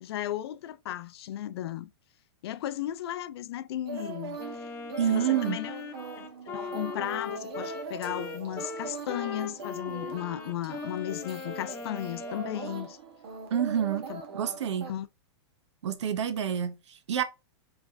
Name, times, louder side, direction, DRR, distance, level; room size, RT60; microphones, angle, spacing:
voice 1, 0.0-1.9 2.4-4.7 5.1-5.8 6.5-13.0 14.1-14.2 14.9-15.1, left 12 dB, 65° left, 0.4 m, -35 dB
sound 1, 3.8-14.9, right 5 dB, 60° right, 1.2 m, -41 dB
Wind instrument woodwind instrument, 4.4-12.9, left 6 dB, 15° left, 0.6 m, -40 dB
voice 2, 5.0-5.6 13.5-14.0 14.3-14.9 15.8-17.2, right 9 dB, 85° right, 0.8 m, -28 dB
4.5 x 3.4 x 2.6 m
supercardioid pair, 160°, 15 cm